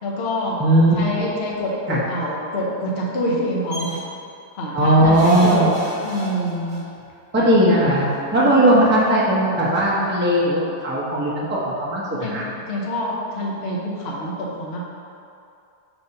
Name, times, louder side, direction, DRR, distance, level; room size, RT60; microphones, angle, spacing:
voice 1, 0.0-0.6 0.9-4.0 4.6-6.8 7.4-7.5 8.4-8.8 12.2-12.4 12.7-14.8, left 1 dB, 45° left, -3 dB, 0.9 m, -26 dB
voice 2, 0.6-1.2 1.9-2.0 4.7-5.7 7.3-12.5, right 1 dB, 10° right, -6 dB, 0.7 m, -18 dB
sound 1, 3.7-4.0 5.1-6.8 8.0-8.1 8.4-8.5, right 1 dB, 75° right, 2.3 m, -34 dB
6.9 x 3.2 x 5.7 m, 2.5 s
omnidirectional pair, 1.9 m